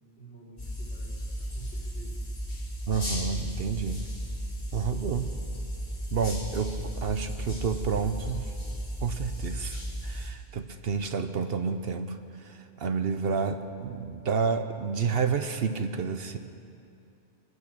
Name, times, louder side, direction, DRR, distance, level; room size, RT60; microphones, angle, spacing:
voice 1, 0.2-2.4, right 3 dB, 75° left, -6 dB, 3.5 m, -50 dB
sound 1, 0.6-10.3, equal, 50° left, 2.7 m, -35 dB
voice 2, 2.9-4.0 4.7-5.3 6.1-8.5 9.0-16.4, right 5 dB, 60° right, 8 dB, 0.9 m, -30 dB
24.5 x 9.7 x 6.0 m, 2.6 s
omnidirectional pair, 1.2 m